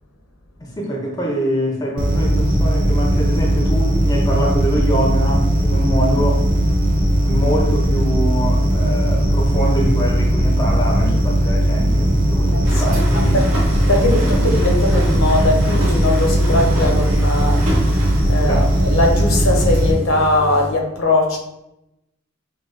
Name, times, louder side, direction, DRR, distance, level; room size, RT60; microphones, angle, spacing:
voice 1, 0.6-6.5 7.2-13.4 18.4-18.8, equal, 20° left, -1 dB, 0.5 m, -24 dB
sound 1, 2.0-19.9, equal, 40° right, 0.6 m, -17 dB
voice 2, 12.5-13.4 13.9-21.4, left 2 dB, 75° left, 1 dB, 0.8 m, -20 dB
sound 2, 12.6-20.7, right 1 dB, 90° right, 1.5 m, -28 dB
6.0 x 2.3 x 2.5 m, 0.86 s
head